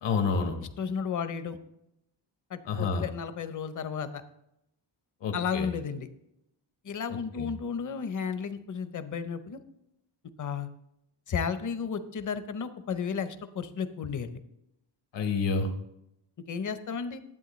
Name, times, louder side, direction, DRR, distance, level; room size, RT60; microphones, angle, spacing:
voice 1, 0.0-0.6 2.7-3.1 5.2-5.7 7.4-7.5 15.1-15.7, left 4 dB, 75° left, 5 dB, 1.3 m, -28 dB
voice 2, 0.6-1.6 2.5-4.2 5.3-6.1 6.8-9.6 10.4-10.7 11.3-14.4 16.5-17.2, left 6 dB, 45° left, 11 dB, 0.7 m, -33 dB
11.0 x 8.2 x 3.1 m, 0.81 s
wide cardioid pair, 140°, 43 cm